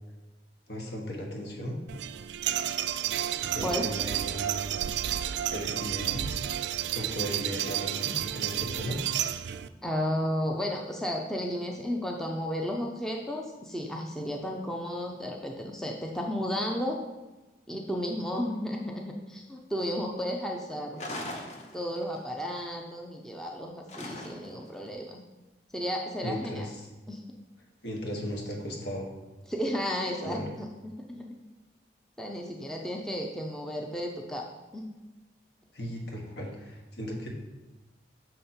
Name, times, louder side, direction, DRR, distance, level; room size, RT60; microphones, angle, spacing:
voice 1, 0.7-1.7 3.5-4.8 5.5-6.4 6.9-9.0 26.2-26.8 27.8-29.1 30.2-30.5 35.7-37.3, equal, 65° left, 0 dB, 1.3 m, -36 dB
sound 1, 1.9-9.7, right 11 dB, 75° right, 0.3 m, -31 dB
voice 2, 9.8-17.0 17.7-21.1 21.7-25.2 25.7-26.7 27.1-27.2 29.5-31.3 32.2-34.4 34.7-34.9, equal, 5° left, 0 dB, 0.5 m, -33 dB
sound 2, 21.0-22.2 23.9-24.7, left 1 dB, 40° left, 0.7 m, -39 dB
6.3 x 5.2 x 4.3 m, 1.1 s
head